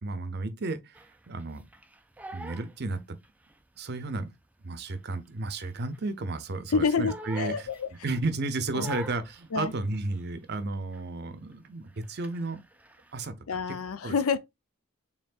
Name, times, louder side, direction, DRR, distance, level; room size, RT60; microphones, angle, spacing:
voice 1, 0.0-1.6 2.3-3.2 3.8-4.3 4.6-7.7 8.0-12.6 13.1-13.6 14.0-14.2, right 3 dB, 50° right, 0.6 m, -33 dB
Crying sobbing, 0.9-3.6 3.9-6.2 6.5-8.2 8.7-10.6 10.9-11.3 11.5-13.1, equal, 5° right, 0.3 m, -46 dB
voice 2, 6.7-7.9 8.7-8.9 9.5-9.7 13.5-14.4, left 5 dB, 80° left, 0.6 m, -28 dB
4.4 x 3.6 x 2.4 m
head